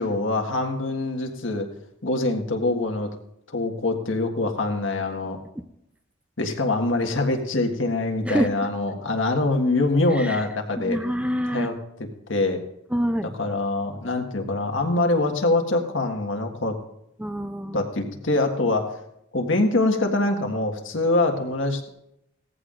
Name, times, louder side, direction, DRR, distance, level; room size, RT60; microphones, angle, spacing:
voice 1, 0.0-1.7 2.0-3.1 3.5-5.4 6.4-11.0 11.5-11.7 12.3-12.6 13.4-16.7 17.7-18.9 19.3-21.9, left 2 dB, 75° left, 4 dB, 1.6 m, -24 dB
voice 2, 10.8-11.7 12.9-13.3 17.2-17.8, equal, 5° right, 9 dB, 0.5 m, -25 dB
18.0 x 14.5 x 2.6 m, 0.79 s
head